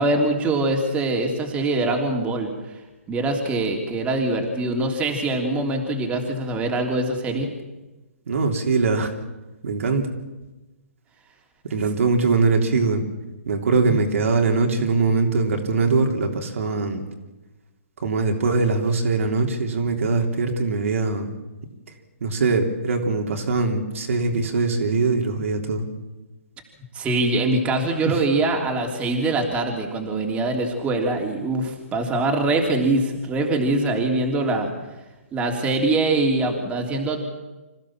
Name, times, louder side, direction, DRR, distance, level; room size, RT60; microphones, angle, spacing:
voice 1, 0.0-2.5 3.1-7.5 26.9-34.7 35.3-37.2, right 2 dB, 15° right, 2 dB, 3.3 m, -23 dB
voice 2, 8.3-9.1 9.6-10.1 11.6-13.0 13.5-17.0 18.0-21.3 22.2-25.9 28.0-28.2, right 3 dB, 70° right, 3 dB, 3.4 m, -22 dB
26.0 x 15.5 x 7.5 m, 1.1 s
hypercardioid pair, 140°, 8 cm